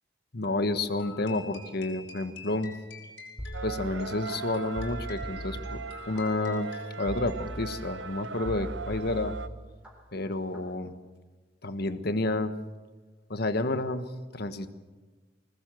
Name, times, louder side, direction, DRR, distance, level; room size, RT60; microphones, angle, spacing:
voice 1, 0.3-2.7 3.6-5.8 6.1-6.7 7.0-9.3 10.1-10.9 11.6-12.5 13.3-14.0 14.3-14.7, left 2 dB, 60° left, 10 dB, 1.3 m, -30 dB
sound 1, 1.0-7.8, left 4 dB, 80° left, 5.5 m, -48 dB
sound 2, 3.4-4.4 4.8-6.2 7.1-8.0 8.4-9.9 10.3-10.7, right 1 dB, 5° right, 3.8 m, -39 dB
sound 3, 3.5-9.5, right 5 dB, 75° right, 0.8 m, -39 dB
21.5 x 19.5 x 7.7 m, 1.3 s
head